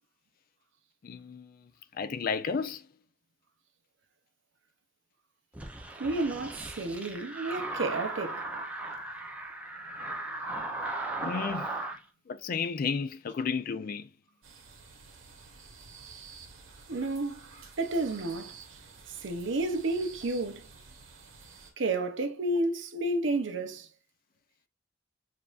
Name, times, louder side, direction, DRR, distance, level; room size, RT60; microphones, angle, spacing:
voice 1, 1.0-1.6 1.9-2.8 11.2-11.8 12.3-14.1, left 5 dB, 45° left, 0.3 m, -32 dB
sound 1, 5.5-12.0, right 2 dB, 5° right, 0.5 m, -37 dB
voice 2, 6.0-8.4 16.9-17.4 17.8-18.6 19.2-20.7 21.8-23.9, right 2 dB, 60° right, 0.6 m, -31 dB
sound 2, 14.4-21.7, right 5 dB, 85° right, 1.2 m, -51 dB
6.7 x 2.5 x 2.4 m
head